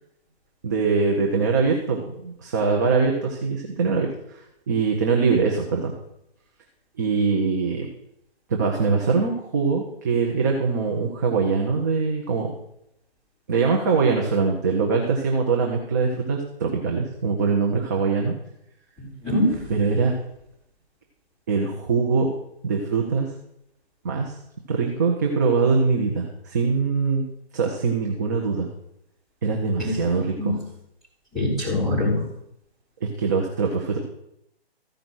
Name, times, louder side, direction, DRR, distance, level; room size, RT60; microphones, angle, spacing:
voice 1, 0.6-4.4 4.7-5.9 7.0-7.9 8.5-12.5 13.5-18.3 19.7-20.1 21.5-22.3 22.6-23.3 24.0-24.4 24.7-27.3 27.5-28.7 29.4-30.6 33.0-34.0, right 4 dB, 20° right, 0 dB, 0.6 m, -23 dB
voice 2, 19.0-19.7 29.8-30.0 30.4-30.6 31.3-32.2, left 1 dB, ahead, -13 dB, 4.3 m, -24 dB
14.5 x 5.0 x 6.2 m, 0.79 s
hypercardioid pair, 160°, 31 cm